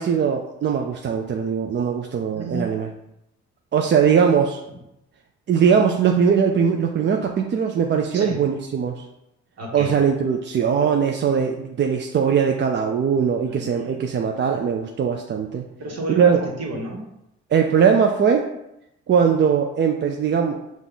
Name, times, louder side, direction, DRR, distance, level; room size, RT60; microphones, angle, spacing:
voice 1, 0.0-2.9 3.7-4.6 5.5-9.0 9.7-15.6 16.2-16.4 17.5-18.5 19.1-20.6, right 7 dB, 40° right, 3 dB, 0.4 m, -20 dB
voice 2, 2.3-2.7 4.7-4.8 8.1-8.4 9.6-10.0 13.4-14.0 15.8-17.1, right 2 dB, 55° right, -1 dB, 1.4 m, -31 dB
5.4 x 2.4 x 3.9 m, 0.84 s
cardioid pair, 90°, 30 cm